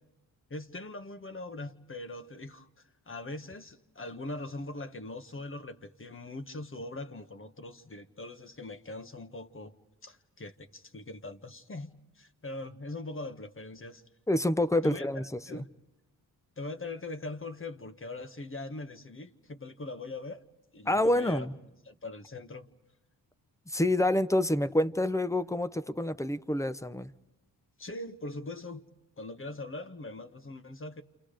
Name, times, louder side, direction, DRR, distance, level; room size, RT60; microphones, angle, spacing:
voice 1, 0.5-9.7 10.0-14.0 14.8-15.1 15.5-15.7 16.6-20.4 20.7-21.5 21.9-22.7 27.8-28.9 29.2-31.0, left 2 dB, 30° left, 1.4 m, -41 dB
voice 2, 14.3-15.6 20.9-21.5 23.7-27.1, left 1 dB, 10° left, 0.8 m, -27 dB
29.0 x 28.5 x 5.1 m
cardioid pair, 65°, 40 cm